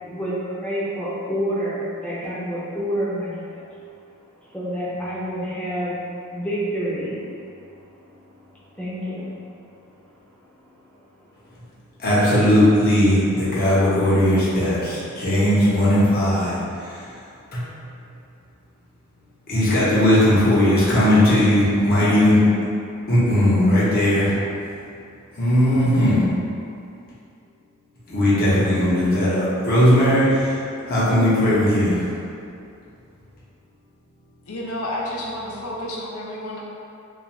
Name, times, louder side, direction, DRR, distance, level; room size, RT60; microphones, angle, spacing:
voice 1, 0.0-3.7 4.4-6.0 6.3-7.2 8.7-9.3, equal, 5° left, -9 dB, 0.6 m, -28 dB
voice 2, 12.0-16.6 17.5-17.6 19.5-22.4 23.1-24.3 25.4-26.2 28.1-30.6 30.9-32.0, left 1 dB, 45° left, -9 dB, 0.8 m, -18 dB
voice 3, 34.5-36.6, left 1 dB, 90° left, -3 dB, 0.5 m, -30 dB
2.4 x 2.4 x 3.0 m, 2.5 s
head